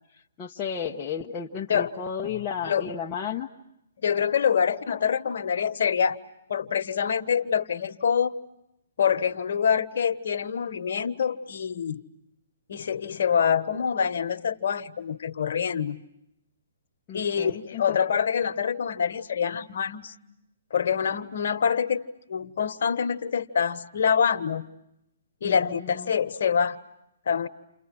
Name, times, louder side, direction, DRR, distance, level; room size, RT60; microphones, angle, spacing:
voice 1, 0.1-3.5 17.1-18.0 25.4-26.1, left 7 dB, 20° left, -3 dB, 1.3 m, -33 dB
voice 2, 4.0-6.2 6.5-8.3 9.0-12.0 12.7-16.0 17.1-20.1 20.7-24.7 25.4-26.8 27.3-27.5, left 7 dB, 65° left, 9 dB, 1.4 m, -25 dB
30.0 x 28.5 x 6.2 m, 0.82 s
hypercardioid pair, 145°, 0 cm